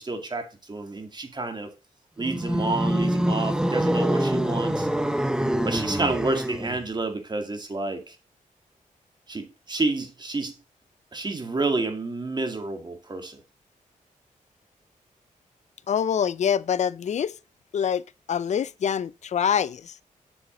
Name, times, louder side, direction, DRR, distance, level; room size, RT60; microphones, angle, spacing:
voice 1, 0.0-1.7 2.2-4.9 5.6-8.2 9.3-10.5 11.1-13.4, right 3 dB, 30° right, 2.0 m, -29 dB
sound 1, 2.2-6.9, right 1 dB, 5° right, 0.7 m, -25 dB
voice 2, 15.9-17.3 17.7-18.0 18.3-20.0, left 8 dB, 55° left, 0.5 m, -25 dB
7.3 x 6.9 x 3.8 m
cardioid pair, 85°, 14 cm